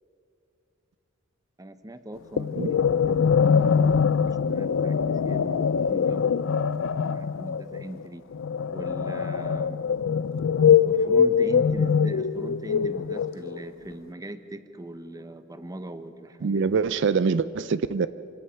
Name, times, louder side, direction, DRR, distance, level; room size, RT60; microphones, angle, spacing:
voice 1, 1.6-3.9 4.2-8.2 8.7-9.8 10.8-16.8, right 1 dB, 20° right, 10 dB, 0.8 m, -40 dB
sound 1, 2.4-13.7, left 6 dB, 70° left, 0.4 m, -23 dB
voice 2, 16.4-18.1, right 5 dB, 60° right, 14 dB, 0.4 m, -24 dB
26.5 x 17.0 x 5.7 m, 2.6 s
head